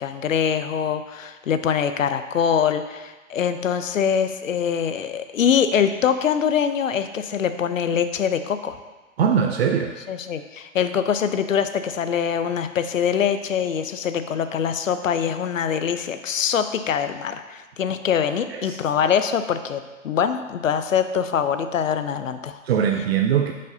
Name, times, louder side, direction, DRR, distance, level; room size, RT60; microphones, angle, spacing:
voice 1, 0.0-8.8 10.1-22.6, left 8 dB, 75° left, 10 dB, 0.7 m, -23 dB
voice 2, 9.2-10.0 18.5-18.8 22.6-23.5, right 8 dB, 50° right, 4 dB, 0.6 m, -21 dB
10.5 x 5.3 x 2.7 m, 1.2 s
hypercardioid pair, 130°, 39 cm